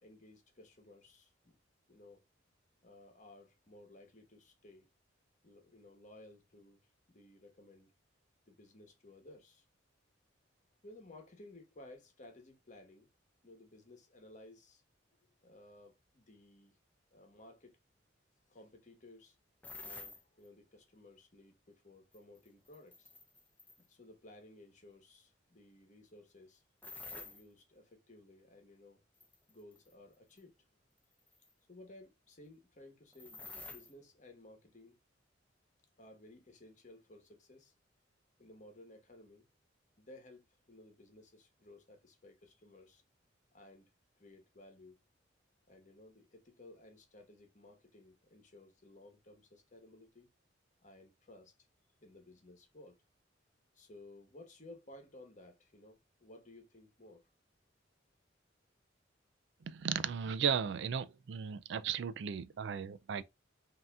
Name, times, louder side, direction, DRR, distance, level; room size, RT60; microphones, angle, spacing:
voice 1, 0.0-1.6 1.9-2.2 2.8-4.9 5.4-6.8 7.1-7.9 8.5-9.6 10.8-13.1 13.4-14.8 15.1-16.8 17.1-17.8 18.5-19.4 19.8-23.1 23.8-26.6 27.1-29.0 29.5-30.5 31.7-35.0 36.0-37.7 38.4-39.4 40.0-43.0 43.5-43.9 44.2-45.0 45.7-50.3 50.8-51.5 52.0-53.0 53.7-57.2, left 2 dB, 40° left, 1.2 m, -57 dB
sound 1, 19.6-20.2 22.1-23.9 26.8-27.4 29.2-29.9 30.4-30.5 31.3-31.5 33.1-33.9, left 3 dB, 10° left, 0.7 m, -49 dB
voice 2, 59.7-63.2, right 7 dB, 65° right, 0.4 m, -35 dB
5.5 x 2.8 x 2.4 m
head